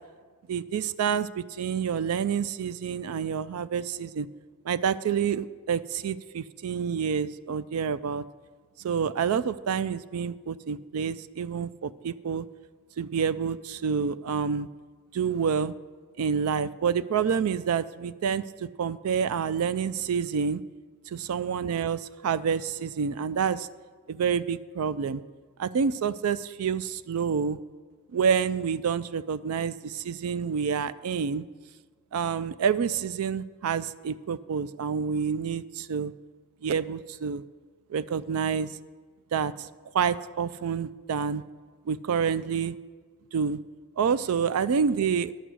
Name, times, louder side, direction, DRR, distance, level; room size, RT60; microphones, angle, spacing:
voice 1, 0.5-4.3 4.6-8.2 8.8-12.5 13.0-14.7 15.1-15.7 16.2-20.6 21.1-23.7 24.1-25.2 25.6-27.6 28.1-31.4 32.1-36.1 36.6-37.4 37.9-38.7 39.3-39.7 39.9-41.4 41.9-42.8 43.3-43.6 44.0-45.3, right 6 dB, 80° right, 15 dB, 0.4 m, -28 dB
11.0 x 8.2 x 6.2 m, 1.5 s
head